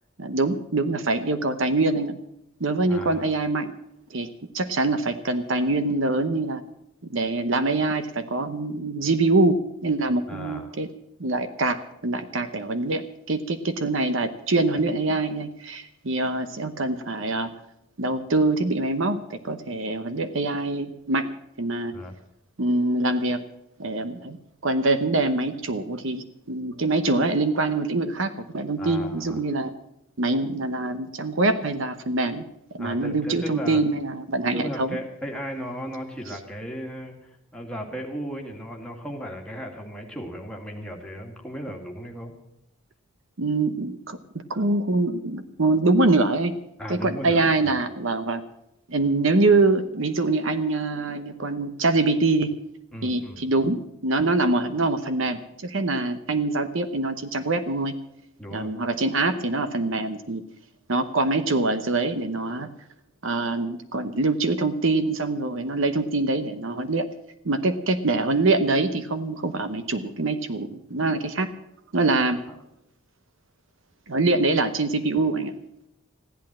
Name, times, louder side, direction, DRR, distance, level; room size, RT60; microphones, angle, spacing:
voice 1, 0.2-2.2 2.6-3.7 4.1-6.6 7.1-10.9 11.2-17.5 18.0-21.3 21.6-21.9 22.6-23.4 23.8-24.4 24.6-29.7 30.2-32.4 32.7-35.0 36.3-36.4 43.4-46.6 46.9-48.4 48.9-52.5 53.0-57.9 58.5-60.4 60.9-62.7 63.2-67.1 67.4-71.5 71.9-72.4 74.1-75.5, right 2 dB, 60° right, 10 dB, 0.9 m, -24 dB
voice 2, 2.9-3.3 10.3-10.7 21.9-22.1 28.8-29.4 32.8-33.8 34.5-42.3 46.8-47.5 52.9-53.4 58.4-58.7, equal, 5° left, 0 dB, 2.2 m, -36 dB
15.0 x 11.0 x 7.4 m, 0.82 s
head